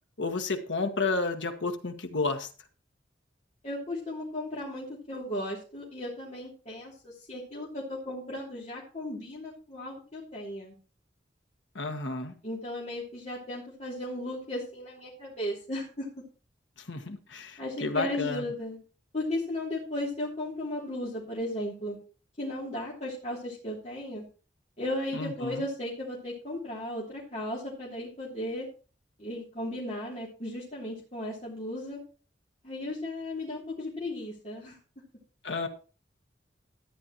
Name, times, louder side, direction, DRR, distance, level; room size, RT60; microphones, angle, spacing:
voice 1, 0.2-2.5 11.7-12.3 16.8-18.4 25.1-25.6 35.4-35.7, left 3 dB, 80° left, 6 dB, 1.4 m, -31 dB
voice 2, 3.6-10.7 12.4-16.1 17.6-18.8 19.1-22.0 22.4-24.2 24.8-28.7 29.2-32.0 32.6-34.8, left 1 dB, 35° left, -5 dB, 2.9 m, -35 dB
13.0 x 10.0 x 3.0 m, 0.36 s
head